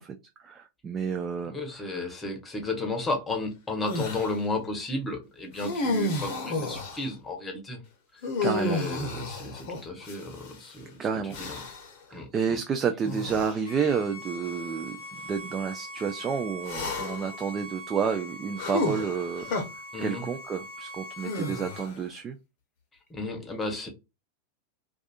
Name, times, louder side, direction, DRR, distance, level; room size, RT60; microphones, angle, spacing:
voice 1, 0.0-2.2 8.4-8.8 11.0-11.4 12.1-19.5 19.7-22.4 23.8-23.9, right 6 dB, 25° right, 0.3 m, -30 dB
voice 2, 1.5-7.8 8.1-8.3 8.6-11.0 11.4-11.6 12.1-12.3 19.9-20.2 23.1-23.9, left 2 dB, 15° left, 0.8 m, -33 dB
sound 1, 3.9-4.3 5.6-7.1 8.2-10.6 11.3-11.9 13.0-13.6 14.4-14.5 16.6-17.3 18.6-19.6 21.2-22.0, left 2 dB, 50° left, 0.7 m, -31 dB
Bowed string instrument, 13.6-21.9, equal, 75° right, 1.2 m, -42 dB
2.5 x 2.3 x 2.3 m
figure-of-eight pair, 90°, 0 cm